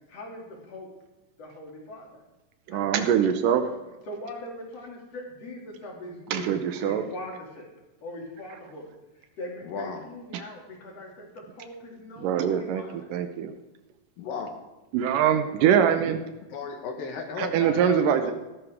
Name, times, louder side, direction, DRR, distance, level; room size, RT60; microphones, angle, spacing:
voice 1, 0.1-0.9 1.4-2.2 2.7-3.1 3.6-3.8 4.1-7.7 8.0-8.9 9.4-13.1, left 1 dB, 50° left, -1 dB, 3.7 m, -41 dB
voice 2, 2.7-3.6 6.3-7.1 10.3-10.4 12.2-13.5 14.9-16.2 17.4-18.3, right 9 dB, 80° right, 8 dB, 2.4 m, -23 dB
voice 3, 9.6-10.1 14.2-14.5 16.5-18.3, left 5 dB, 85° left, 3 dB, 3.1 m, -34 dB
16.0 x 13.0 x 3.6 m, 1.0 s
omnidirectional pair, 3.9 m